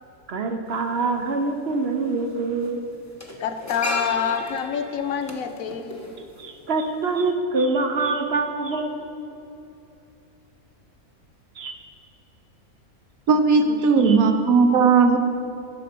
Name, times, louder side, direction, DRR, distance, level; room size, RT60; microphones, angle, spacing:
voice 1, 0.3-2.8 6.4-9.3 11.6-11.7 13.7-14.2, right 3 dB, 55° right, 5 dB, 0.8 m, -25 dB
sound 1, 0.7-0.8 2.0-2.3 2.5-6.8 7.1-7.3, left 1 dB, 15° left, 0.8 m, -34 dB
voice 2, 3.4-6.1, left 7 dB, 75° left, 9 dB, 1.0 m, -27 dB
voice 3, 13.3-15.2, right 5 dB, 75° right, 7 dB, 1.2 m, -17 dB
11.0 x 5.3 x 6.7 m, 2.9 s
omnidirectional pair, 1.5 m